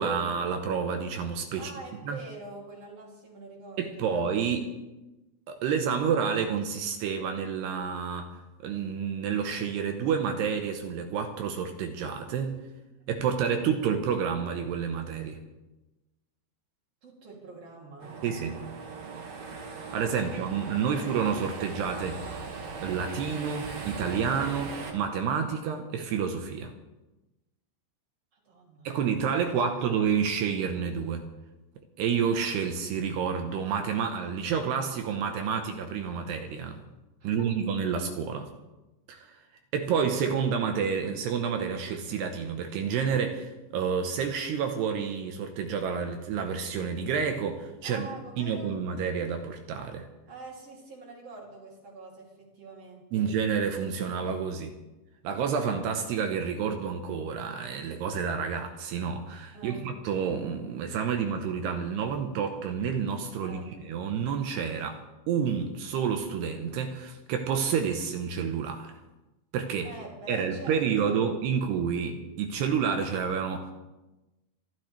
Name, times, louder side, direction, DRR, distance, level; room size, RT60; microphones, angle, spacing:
voice 1, 0.0-1.7 2.1-2.2 3.8-4.7 5.5-8.3 8.6-12.6 13.1-15.4 18.2-18.6 19.9-22.2 22.8-26.7 28.8-31.2 32.0-36.8 37.2-38.5 39.1-39.3 39.7-48.1 48.4-50.1 53.1-54.7 55.2-65.0 65.3-68.9 69.5-69.9 70.3-73.7, right 6 dB, 75° right, 5 dB, 2.7 m, -29 dB
voice 2, 1.5-4.7 13.4-13.5 17.0-18.1 20.0-21.0 28.3-28.9 29.3-30.0 37.2-37.5 47.8-48.7 50.3-53.3 59.5-59.8 63.4-63.7 69.8-71.3, right 3 dB, 35° right, -2 dB, 3.2 m, -46 dB
sound 1, 18.0-24.9, right 4 dB, 55° right, 2.3 m, -39 dB
26.0 x 13.0 x 3.3 m, 1.0 s
omnidirectional pair, 5.7 m